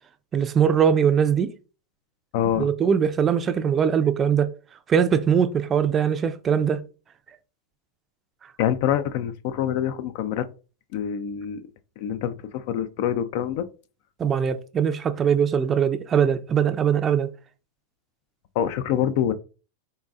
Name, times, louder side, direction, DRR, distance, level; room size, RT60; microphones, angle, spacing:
voice 1, 0.3-1.5 2.6-4.5 4.9-6.8 14.2-17.3, right 7 dB, 25° right, 0.4 m, -21 dB
voice 2, 2.3-2.7 8.6-10.5 10.9-11.6 12.0-13.7 18.6-19.3, left 10 dB, 55° left, 0.4 m, -25 dB
3.9 x 3.8 x 2.4 m
hypercardioid pair, 120°, 0 cm